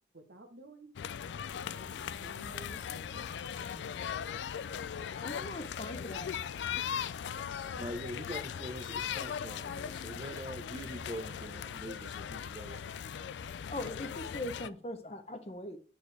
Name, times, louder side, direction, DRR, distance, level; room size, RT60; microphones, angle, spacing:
voice 1, 0.1-0.9 1.5-3.3 3.7-4.2 5.0-5.1, right 2 dB, 65° right, 6 dB, 1.2 m, -54 dB
sound 1, 1.0-14.7, left 8 dB, 75° left, 0.3 m, -39 dB
voice 2, 5.2-6.3 13.7-15.8, left 1 dB, 35° left, 8 dB, 0.8 m, -40 dB
voice 3, 7.7-13.0, right 1 dB, 25° right, 9 dB, 0.8 m, -43 dB
8.8 x 6.5 x 3.3 m, 0.42 s
head